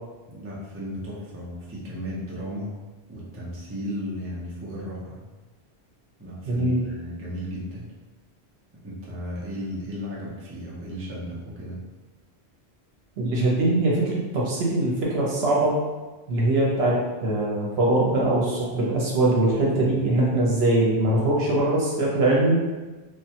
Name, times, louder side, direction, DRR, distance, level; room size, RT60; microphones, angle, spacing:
voice 1, 0.3-2.7 3.1-5.2 6.2-7.8 8.8-11.8 19.9-20.1, equal, 20° right, -6 dB, 0.4 m, -35 dB
voice 2, 6.4-6.8 13.2-15.8 16.3-17.0 17.2-22.6, right 2 dB, 65° right, -4 dB, 1.0 m, -22 dB
3.2 x 2.2 x 2.8 m, 1.2 s
omnidirectional pair, 1.1 m